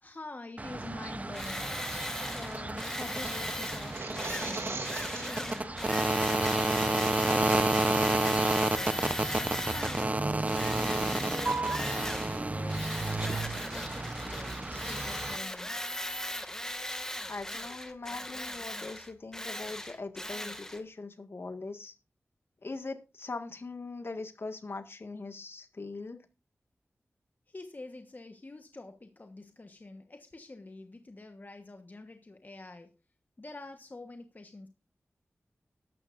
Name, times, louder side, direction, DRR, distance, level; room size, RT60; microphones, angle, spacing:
voice 1, 0.0-1.9 2.3-9.4 9.6-12.9 13.2-15.8 27.5-32.9 33.4-34.7, left 2 dB, 40° left, 6 dB, 1.2 m, -46 dB
sound 1, 0.6-15.4, right 2 dB, 30° right, 0.8 m, -31 dB
Tools, 1.3-10.1 10.5-12.4 12.7-20.8, left 1 dB, 10° left, 2.0 m, -37 dB
sound 2, 3.8-5.6, right 3 dB, 65° right, 2.9 m, -38 dB
voice 2, 17.3-21.9 22.6-26.2, left 3 dB, 55° left, 7 dB, 1.7 m, -41 dB
14.0 x 11.5 x 2.6 m, 0.28 s
wide cardioid pair, 60°, 5 cm